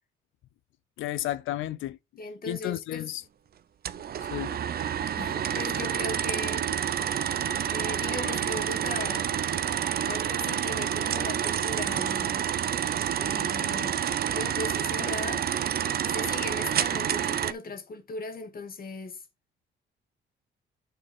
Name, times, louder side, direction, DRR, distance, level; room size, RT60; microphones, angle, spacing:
voice 1, 1.0-2.0 2.5-3.2 4.2-4.6, left 14 dB, 85° left, 0.6 m, -32 dB
voice 2, 2.2-3.1 5.2-6.8 7.7-9.3 10.0-12.4 13.1-15.6 16.1-19.2, left 3 dB, 45° left, 2.3 m, -38 dB
sound 1, 3.8-17.5, right 9 dB, 50° right, 0.6 m, -28 dB
9.0 x 4.4 x 3.7 m
cardioid pair, 90°, 20 cm